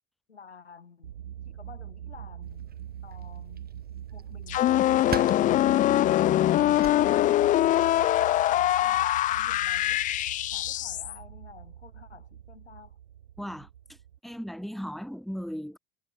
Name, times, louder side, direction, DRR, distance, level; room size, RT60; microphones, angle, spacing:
voice 1, 0.3-1.2 1.4-2.7 3.0-3.7 4.1-10.0 10.5-13.0, left 5 dB, 80° left, 7.9 m, -52 dB
sound 1, 1.0-14.2, right 10 dB, 75° right, 1.4 m, -43 dB
sound 2, 2.4-7.8, right 7 dB, 30° right, 5.9 m, -44 dB
sound 3, 4.5-11.2, left 14 dB, 25° left, 0.4 m, -23 dB
voice 2, 13.4-15.8, equal, ahead, 4.0 m, -37 dB
figure-of-eight pair, 65°, 32 cm